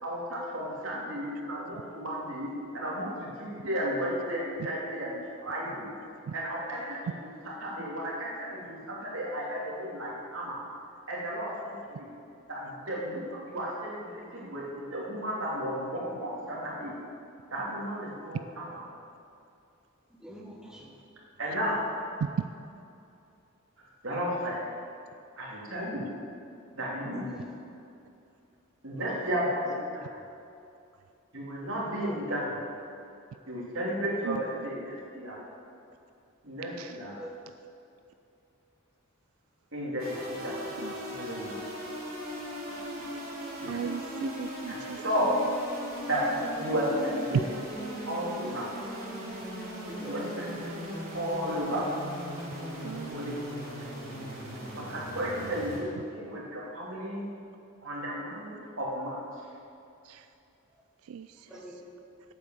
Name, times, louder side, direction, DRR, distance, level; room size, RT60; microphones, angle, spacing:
voice 1, 0.0-5.9 6.3-7.1 7.6-10.6 11.1-12.1 12.5-16.9 17.5-18.8 21.4-21.8 24.0-24.6 25.4-26.1 26.7-27.3 28.8-30.2 31.3-32.4 33.5-35.4 36.4-37.2 39.7-41.5 43.6-43.8 44.7-44.8 45.0-45.3 46.1-47.4 47.7-47.8 48.1-48.7 50.0-51.9 53.1-53.5 53.8-54.2 54.7-57.2 57.8-59.2, equal, 65° right, -5 dB, 2.9 m, -33 dB
voice 2, 20.1-21.0 27.2-27.6 28.9-29.0 32.0-32.2 37.2-37.4 40.0-40.6 49.9-50.3 60.7-60.8 61.5-61.9, equal, 5° right, -2 dB, 1.1 m, -47 dB
sound 1, 40.0-55.8, equal, 45° right, 3.1 m, -38 dB
voice 3, 43.7-45.0 47.3-47.4 52.8-53.4 55.3-55.5 60.0-60.3 61.0-61.5, right 7 dB, 90° right, 10 dB, 0.3 m, -35 dB
8.5 x 8.4 x 7.1 m, 2.6 s
head